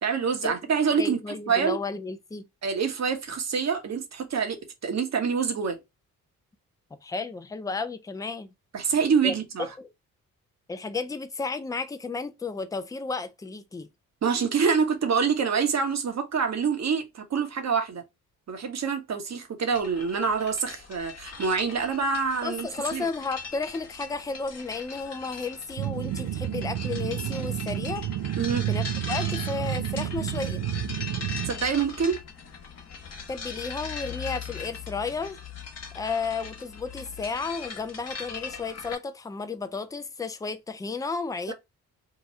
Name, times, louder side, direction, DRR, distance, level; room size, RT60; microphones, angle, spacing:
voice 1, 0.0-1.8 2.6-4.6 4.8-5.8 8.7-9.7 14.2-18.0 18.5-23.1 28.4-28.7 31.4-32.2 41.5-41.6, right 6 dB, 45° right, 1.0 m, -26 dB
voice 2, 1.0-2.5 7.0-8.5 9.2-9.3 9.6-9.9 10.7-13.9 22.4-28.1 28.7-30.6 33.3-35.4 35.9-41.5, left 4 dB, 10° left, 0.4 m, -33 dB
sound 1, 19.7-38.9, left 6 dB, 45° left, 1.1 m, -40 dB
sound 2, 25.8-31.5, right 13 dB, 70° right, 0.5 m, -30 dB
2.9 x 2.3 x 4.1 m
supercardioid pair, 50°, 37 cm